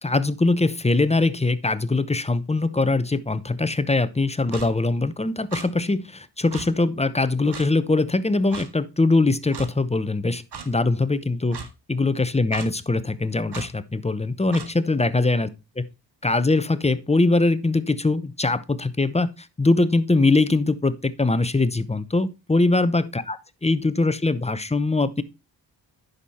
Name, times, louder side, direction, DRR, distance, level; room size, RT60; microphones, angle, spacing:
voice 1, 0.0-15.5 15.8-15.9 16.2-25.2, left 3 dB, 15° left, 0.8 m, -22 dB
Clock, 4.5-4.7 5.5-5.7 6.5-6.7 7.5-7.7 8.5-8.7 9.5-9.7 10.5-10.7 11.5-11.7 12.5-12.7 13.5-13.7 14.5-14.7, right 6 dB, 65° right, 1.8 m, -36 dB
9.7 x 6.6 x 4.3 m
cardioid pair, 75°, 44 cm